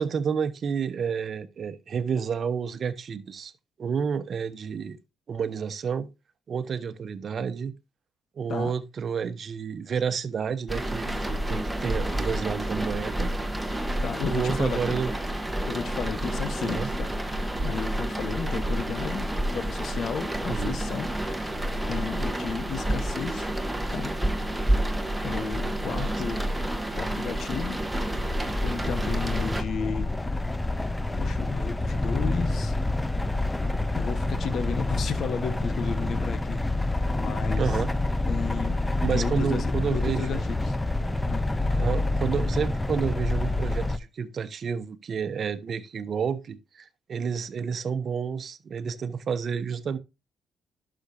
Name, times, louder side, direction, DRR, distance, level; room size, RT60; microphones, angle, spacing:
voice 1, 0.0-3.5 3.8-5.0 5.3-6.1 6.5-7.7 8.4-13.3 14.3-15.1 16.6-16.9 20.5-20.8 25.8-26.1 37.5-37.9 39.0-40.4 41.8-50.0, right 6 dB, 50° right, 1.0 m, -30 dB
sound 1, 10.7-29.6, right 1 dB, 5° right, 1.3 m, -29 dB
voice 2, 14.0-15.0 15.7-17.1 17.6-21.5 21.9-23.5 23.9-24.1 25.2-26.5 26.9-27.8 28.6-30.1 31.2-32.7 33.9-36.6 37.1-37.7 38.3-38.8 39.1-40.8 41.2-41.5, left 6 dB, 60° left, 1.2 m, -33 dB
sound 2, 27.4-44.0, left 2 dB, 15° left, 0.6 m, -28 dB
11.5 x 6.3 x 2.7 m
cardioid pair, 90°, 0 cm